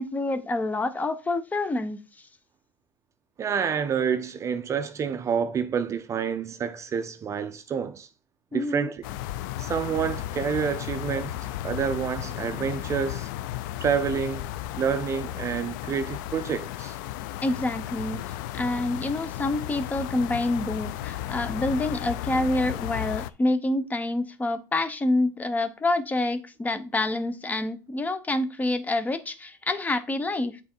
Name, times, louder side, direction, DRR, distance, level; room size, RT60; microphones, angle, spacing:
voice 1, 0.0-2.0 8.5-8.9 17.4-30.6, left 2 dB, 15° left, 0.8 m, -27 dB
voice 2, 3.4-8.1 8.5-9.0 9.6-11.3 11.6-13.3 13.8-14.5 14.8-17.0, right 7 dB, 30° right, 0.5 m, -28 dB
sound 1, 9.0-23.3, left 13 dB, 80° left, 0.5 m, -34 dB
8.3 x 3.7 x 4.5 m
supercardioid pair, 125°, 10 cm